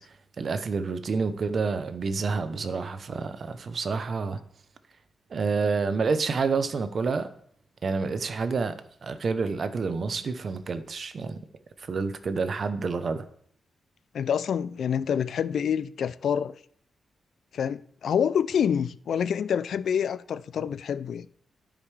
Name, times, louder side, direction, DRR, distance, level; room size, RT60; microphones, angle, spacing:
voice 1, 0.0-4.4 5.3-7.3 7.8-11.4 11.8-13.2, right 4 dB, 50° right, 0.7 m, -29 dB
voice 2, 14.1-16.5 17.5-21.3, left 8 dB, 75° left, 0.3 m, -27 dB
13.0 x 5.0 x 3.3 m
cardioid pair, 105°, 0 cm